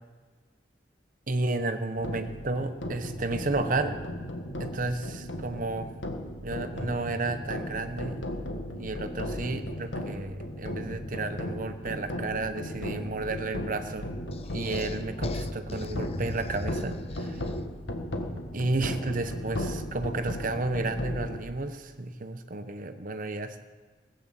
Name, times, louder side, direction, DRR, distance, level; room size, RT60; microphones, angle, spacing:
voice 1, 1.3-4.0 4.6-6.0 6.4-8.3 8.8-14.1 14.5-17.4 18.5-23.6, right 2 dB, 45° right, 8 dB, 0.9 m, -32 dB
sound 1, 2.0-21.4, left 1 dB, 80° left, 1.6 m, -36 dB
sound 2, 14.3-17.9, left 3 dB, 35° left, 0.5 m, -40 dB
16.5 x 8.4 x 7.6 m, 1.4 s
head